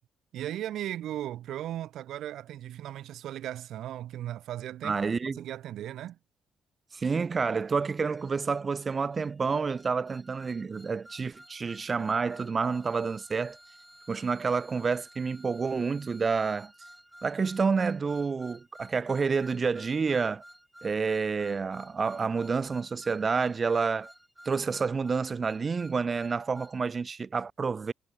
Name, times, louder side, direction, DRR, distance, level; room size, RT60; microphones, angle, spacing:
voice 1, 0.3-5.0 5.4-6.2, right 12 dB, 80° right, 0.6 m, -37 dB
voice 2, 4.8-5.4 6.9-13.6 14.1-16.7 17.2-20.4 20.8-24.1 24.4-27.9, right 5 dB, 35° right, 0.9 m, -29 dB
sound 1, 8.2-26.8, equal, 5° right, 2.3 m, -54 dB
cardioid pair, 90°, 0 cm